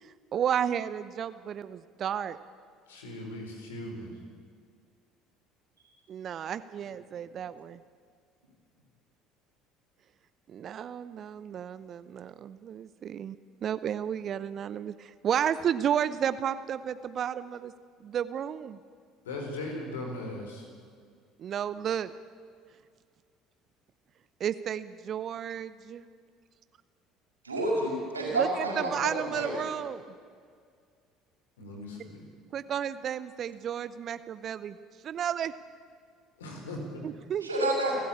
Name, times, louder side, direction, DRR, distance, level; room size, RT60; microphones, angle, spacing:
voice 1, 0.0-2.4 6.1-7.8 10.5-17.7 18.0-18.8 21.4-22.1 24.4-26.0 28.3-30.0 32.5-34.8 35.0-35.5 37.0-37.5, right 9 dB, 45° right, 14 dB, 0.7 m, -32 dB
voice 2, 2.9-4.2 19.2-20.7 31.6-32.3 36.4-37.0, left 1 dB, 75° left, 2 dB, 4.5 m, -38 dB
voice 3, 27.4-29.5 37.4-38.0, right 1 dB, 90° right, -2 dB, 5.6 m, -29 dB
29.5 x 12.5 x 8.7 m, 2.1 s
figure-of-eight pair, 60°, 0 cm